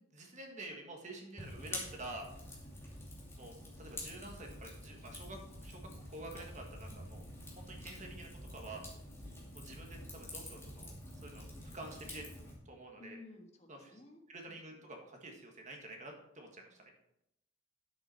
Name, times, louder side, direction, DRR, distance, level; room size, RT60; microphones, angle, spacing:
voice 1, 0.0-2.3 3.4-5.8 6.1-7.2 7.6-8.8 9.5-11.5 11.7-12.3 12.7-13.2 13.7-14.0 14.3-16.9, right 2 dB, 35° right, 2 dB, 1.6 m, -49 dB
Fire, 1.4-12.5, left 1 dB, 15° left, 2.5 m, -48 dB
voice 2, 6.9-7.3 13.0-14.2 14.5-14.8, left 2 dB, 30° left, 3 dB, 1.4 m, -56 dB
10.0 x 7.8 x 4.4 m, 0.80 s
head